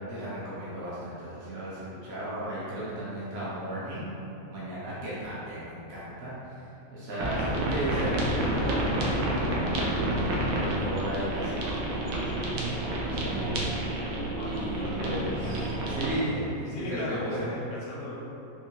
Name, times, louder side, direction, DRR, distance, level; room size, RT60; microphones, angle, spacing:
voice 1, 0.1-4.1 4.5-6.6 6.9-12.5 13.0-13.7 14.4-17.5, right 1 dB, 55° right, -10 dB, 0.9 m, -35 dB
voice 2, 7.1-7.5 14.4-15.2 15.5-15.7 16.7-18.2, left 2 dB, 70° left, -3 dB, 0.8 m, -38 dB
sound 1, 7.2-16.2, right 1 dB, 75° right, 1.0 m, -29 dB
3.7 x 2.6 x 2.8 m, 2.9 s
omnidirectional pair, 1.5 m